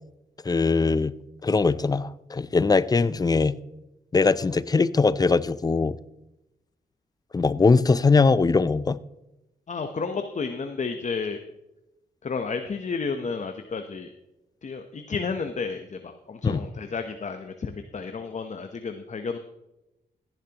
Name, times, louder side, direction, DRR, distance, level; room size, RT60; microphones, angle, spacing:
voice 1, 0.4-1.1 1.4-3.6 4.1-6.0 7.3-9.0 16.4-16.6, left 4 dB, 20° left, 0.4 m, -21 dB
voice 2, 9.7-11.4 12.2-14.1 14.6-19.4, left 5 dB, 45° left, 0.8 m, -31 dB
15.5 x 10.5 x 2.9 m
cardioid pair, 85°, 17 cm